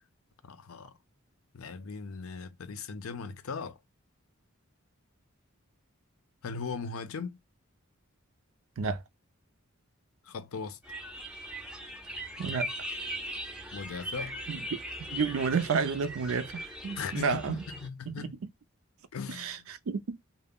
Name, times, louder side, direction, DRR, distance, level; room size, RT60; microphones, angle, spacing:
voice 1, 0.4-1.0 1.5-3.8 6.4-7.4 10.2-10.8 13.7-14.4 17.0-18.3 19.1-19.6, left 5 dB, 80° left, 0.5 m, -38 dB
sound 1, 10.8-17.9, equal, 5° right, 0.4 m, -39 dB
voice 2, 12.4-12.7 14.5-14.8 15.1-17.6 18.1-18.4 19.3-20.2, right 5 dB, 75° right, 0.4 m, -31 dB
2.3 x 2.0 x 3.4 m
head